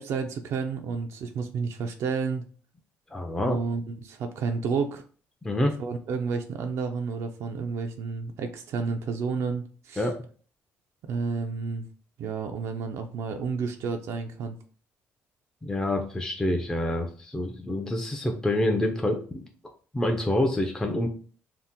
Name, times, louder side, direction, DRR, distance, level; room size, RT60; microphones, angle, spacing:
voice 1, 0.0-2.4 3.4-5.0 5.8-10.1 11.1-11.9 12.2-14.6, right 5 dB, 70° right, 5 dB, 0.3 m, -31 dB
voice 2, 3.1-3.6 5.4-5.7 10.0-10.2 15.6-19.4 19.9-21.1, left 1 dB, 10° left, 3 dB, 0.4 m, -27 dB
2.7 x 2.0 x 3.5 m, 0.42 s
cardioid pair, 90°, 5 cm